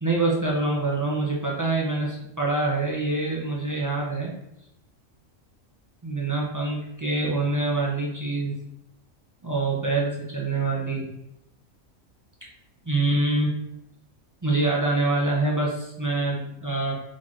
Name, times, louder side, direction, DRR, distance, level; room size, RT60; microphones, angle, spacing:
voice 1, 0.0-4.3 6.0-8.6 9.4-11.1 12.9-13.5 14.4-17.0, right 2 dB, 25° right, -4 dB, 0.4 m, -25 dB
4.2 x 3.1 x 3.6 m, 0.82 s
omnidirectional pair, 1.4 m